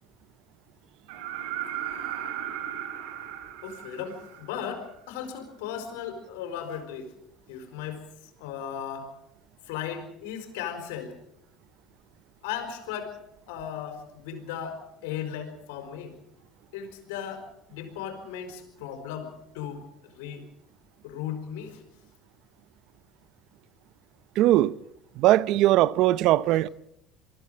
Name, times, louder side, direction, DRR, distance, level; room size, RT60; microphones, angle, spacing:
sound 1, 1.1-4.9 6.8-6.9, right 11 dB, 80° right, 4.2 m, -36 dB
voice 1, 3.6-7.1 7.5-8.0 8.4-9.1 9.7-11.2 12.4-13.1 13.5-16.1 16.7-19.8 20.1-20.4 21.0-21.8, left 8 dB, 85° left, 4.5 m, -36 dB
voice 2, 24.4-24.7 25.2-26.7, right 15 dB, 65° right, 0.7 m, -20 dB
23.0 x 15.0 x 7.7 m
supercardioid pair, 90°, 0 cm